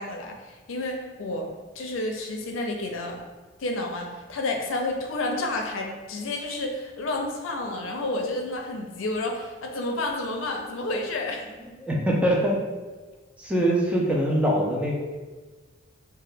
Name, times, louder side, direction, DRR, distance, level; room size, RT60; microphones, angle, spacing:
voice 1, 0.0-1.5 1.8-3.2 3.6-11.4, left 2 dB, 75° left, 2 dB, 0.5 m, -30 dB
voice 2, 11.8-12.6 13.4-14.9, right 1 dB, 5° right, -2 dB, 0.4 m, -23 dB
2.8 x 2.2 x 3.3 m, 1.3 s
head